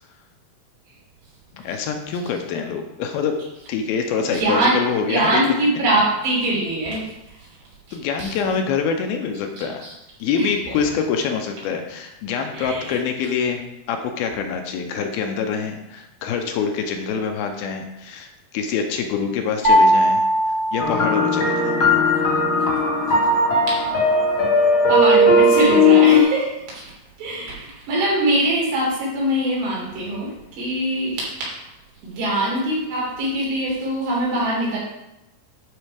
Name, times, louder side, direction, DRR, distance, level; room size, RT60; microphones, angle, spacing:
voice 1, 1.5-3.4 3.7-5.4 7.9-9.9 10.2-13.6 13.9-20.3 20.7-21.8, left 6 dB, 80° left, 5 dB, 2.5 m, -25 dB
voice 2, 4.2-4.8 5.1-7.1 8.2-8.3 9.8-9.9 10.3-10.5 12.5-13.0 24.9-26.5 26.8-26.9 27.2-30.3 30.6-31.2 32.0-34.8, right 1 dB, 90° right, -6 dB, 5.7 m, -22 dB
sound 1, 19.6-21.8, equal, 60° right, 1.2 m, -19 dB
sound 2, 20.8-26.2, left 2 dB, 50° left, 1.6 m, -17 dB
12.0 x 4.3 x 5.0 m, 0.92 s
omnidirectional pair, 4.7 m